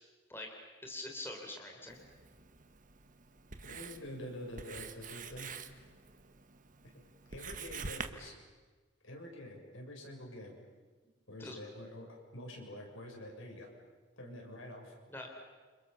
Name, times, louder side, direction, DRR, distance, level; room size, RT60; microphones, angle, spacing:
voice 1, 0.8-2.0 8.2-8.3 11.4-11.6 15.1-15.4, left 2 dB, 10° left, 1 dB, 3.7 m, -44 dB
Writing, 1.9-8.1, right 5 dB, 40° right, 1.5 m, -47 dB
voice 2, 3.6-5.5 7.3-8.3 9.0-10.5 11.3-13.7 14.2-15.0, left 1 dB, 80° left, 0 dB, 7.2 m, -47 dB
29.5 x 27.0 x 7.1 m, 1.4 s
head